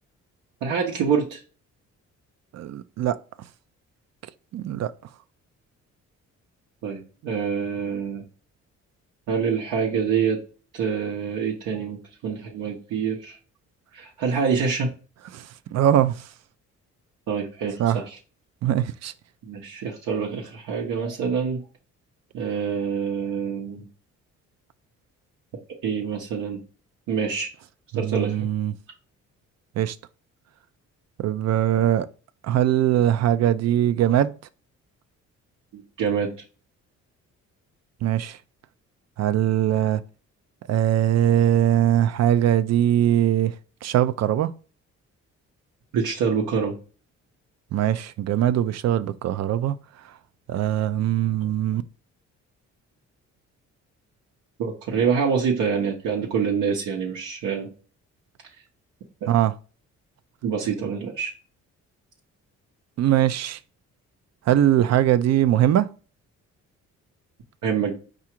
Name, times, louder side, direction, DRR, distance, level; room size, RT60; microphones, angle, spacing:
voice 1, 0.6-1.4 6.8-8.2 9.3-10.4 10.7-13.4 13.9-14.9 17.3-18.0 19.4-21.6 22.3-23.9 25.8-26.6 27.1-27.5 27.9-28.5 35.7-36.3 45.9-46.7 54.6-57.7 60.4-61.3 67.6-67.9, right 6 dB, 85° right, 0.9 m, -26 dB
voice 2, 2.5-3.5 4.5-4.9 15.3-16.3 17.8-18.0 18.6-19.1 27.9-28.7 29.8-30.0 31.2-32.1 32.4-34.3 38.0-38.4 39.2-40.0 40.7-43.5 43.8-44.5 47.7-49.8 50.0-50.1 50.5-51.8 59.3-59.5 63.0-63.6 64.5-65.9, right 11 dB, 60° right, 0.5 m, -21 dB
4.8 x 2.5 x 4.3 m
cardioid pair, 90°, 30 cm